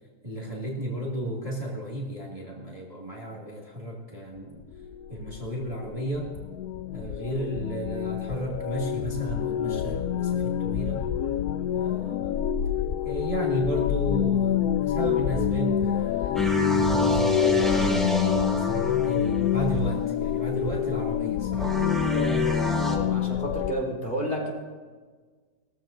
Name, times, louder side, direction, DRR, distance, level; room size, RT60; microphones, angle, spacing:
voice 1, 0.2-4.6 5.1-6.3 6.9-11.1 11.7-12.6 13.0-18.1 18.5-21.8, right 1 dB, 20° right, -3 dB, 1.7 m, -33 dB
sound 1, 4.4-23.7, left 10 dB, 75° left, 1.1 m, -27 dB
sound 2, 16.4-19.6 21.5-23.0, equal, ahead, 1.4 m, -27 dB
voice 2, 22.8-24.5, equal, 35° left, -4 dB, 3.6 m, -31 dB
20.5 x 14.5 x 2.6 m, 1.5 s
omnidirectional pair, 1.7 m